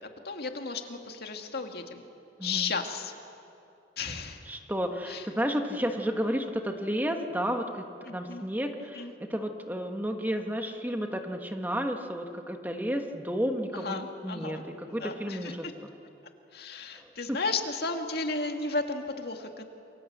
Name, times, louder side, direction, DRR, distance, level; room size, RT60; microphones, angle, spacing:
voice 1, 0.0-2.0 2.4-3.1 4.0-4.4 5.1-5.3 8.0-8.4 8.9-9.1 13.7-15.5 16.5-19.6, left 4 dB, 60° left, 4 dB, 2.1 m, -34 dB
voice 2, 2.4-2.7 4.1-4.2 4.5-14.6 14.9-15.9 16.9-17.4, equal, 10° right, 4 dB, 1.4 m, -32 dB
28.5 x 23.0 x 8.0 m, 2.7 s
head